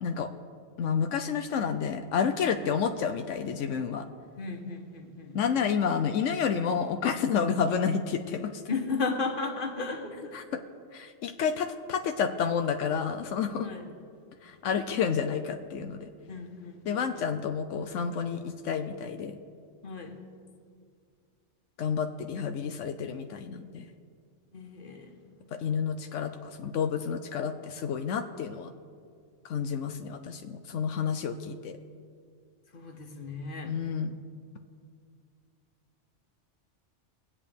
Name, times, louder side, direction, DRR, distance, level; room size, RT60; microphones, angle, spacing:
voice 1, 0.8-4.0 5.3-8.6 10.3-10.6 10.9-13.7 14.4-16.1 16.9-19.4 21.8-23.9 25.5-28.7 29.4-31.8 33.7-34.2, left 7 dB, 85° left, 6 dB, 1.0 m, -30 dB
voice 2, 4.4-5.4 8.7-10.4 13.6-13.8 16.3-17.3 19.8-20.2 24.5-25.2 32.7-33.8, left 4 dB, 45° left, 3 dB, 1.4 m, -35 dB
22.0 x 8.4 x 3.5 m, 2.2 s
omnidirectional pair, 1.2 m